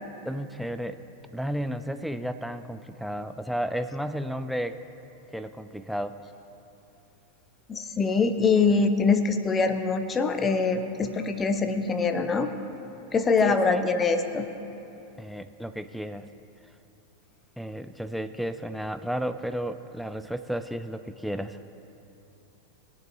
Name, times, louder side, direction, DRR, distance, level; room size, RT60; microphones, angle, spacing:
voice 1, 0.2-1.0 1.3-4.8 5.3-6.2 13.4-13.9 15.2-16.3 17.6-21.6, equal, ahead, 9 dB, 0.5 m, -33 dB
voice 2, 7.7-12.5 13.1-14.5, left 4 dB, 20° left, 8 dB, 0.9 m, -24 dB
22.0 x 7.3 x 2.7 m, 2.9 s
figure-of-eight pair, 90°, 0 cm